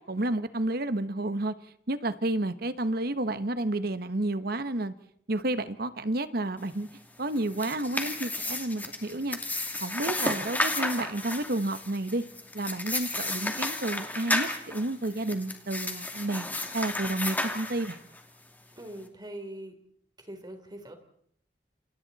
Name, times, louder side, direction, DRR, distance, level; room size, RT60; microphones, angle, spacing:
voice 1, 0.0-1.5 1.9-4.9 5.3-6.9 7.2-9.4 9.8-12.2 12.5-16.5 16.7-18.0, right 2 dB, 60° right, 12 dB, 1.3 m, -30 dB
sound 1, 7.3-18.2, left 2 dB, 10° left, 2.5 m, -33 dB
voice 2, 18.8-19.7 20.2-20.9, right 1 dB, 25° right, 6 dB, 3.6 m, -42 dB
28.5 x 27.5 x 4.2 m, 0.66 s
head